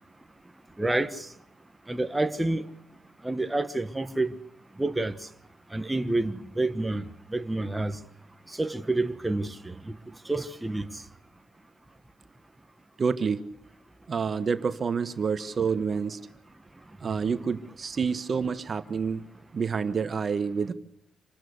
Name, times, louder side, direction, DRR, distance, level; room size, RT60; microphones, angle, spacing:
voice 1, 0.8-1.2 1.9-2.6 3.2-4.3 4.8-5.1 5.7-7.0 7.3-8.0 8.6-9.7 10.3-10.8, right 2 dB, 10° right, 1.3 m, -28 dB
voice 2, 13.0-13.5 14.1-16.2 17.0-19.2 19.5-20.7, right 5 dB, 40° right, 1.2 m, -28 dB
27.0 x 12.5 x 8.1 m
cardioid pair, 90°, 0 cm